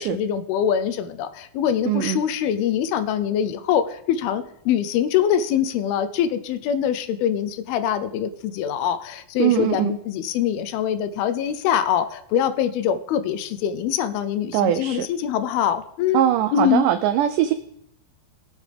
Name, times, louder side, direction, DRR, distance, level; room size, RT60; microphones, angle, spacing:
voice 1, 0.0-16.2 16.5-16.9, left 9 dB, 90° left, 12 dB, 2.6 m, -24 dB
voice 2, 1.9-2.2 9.4-9.9 14.5-15.1 16.1-17.5, right 11 dB, 90° right, 11 dB, 1.8 m, -21 dB
20.0 x 8.2 x 3.4 m, 0.74 s
omnidirectional pair, 4.3 m